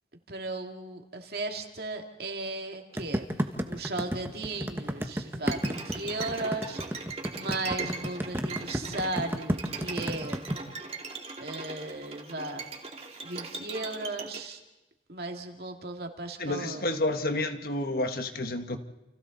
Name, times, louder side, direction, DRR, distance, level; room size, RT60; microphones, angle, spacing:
voice 1, 0.3-3.2 3.7-7.1 7.3-10.4 11.4-12.7 13.2-14.6 15.1-17.0, right 2 dB, 60° right, 3 dB, 2.3 m, -36 dB
sound 1, 3.0-10.5, equal, 15° right, 1.3 m, -31 dB
Bowed string instrument, 5.5-14.4, right 4 dB, 35° right, 2.6 m, -39 dB
voice 2, 16.4-18.8, left 2 dB, 55° left, 7 dB, 1.4 m, -30 dB
29.5 x 29.0 x 4.0 m, 0.99 s
head